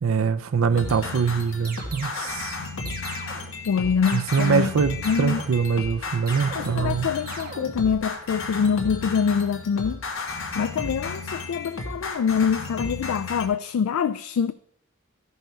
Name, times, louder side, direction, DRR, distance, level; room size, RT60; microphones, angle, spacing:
voice 1, 0.0-2.6 4.1-7.1, right 6 dB, 75° right, 0.4 m, -23 dB
sound 1, 0.7-13.5, left 3 dB, 65° left, 1.3 m, -33 dB
sound 2, 1.7-2.3 2.9-3.6 4.1-4.8 5.0-5.7 6.3-7.0 7.3-7.9, right 4 dB, 45° right, 1.2 m, -40 dB
voice 2, 3.6-4.7 5.0-5.4 6.5-10.0 10.5-14.5, left 6 dB, 85° left, 0.3 m, -25 dB
13.5 x 5.5 x 4.4 m
head